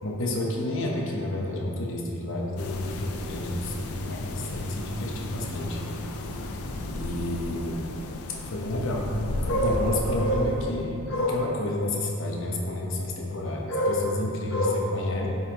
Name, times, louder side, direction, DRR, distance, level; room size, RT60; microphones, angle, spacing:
voice 1, 0.0-5.8 6.9-7.8 8.3-9.1 9.4-15.3, left 1 dB, 60° left, -1 dB, 1.0 m, -29 dB
sound 1, 2.6-10.9, left 2 dB, 80° left, 0.6 m, -34 dB
9.6 x 5.6 x 3.0 m, 2.9 s
head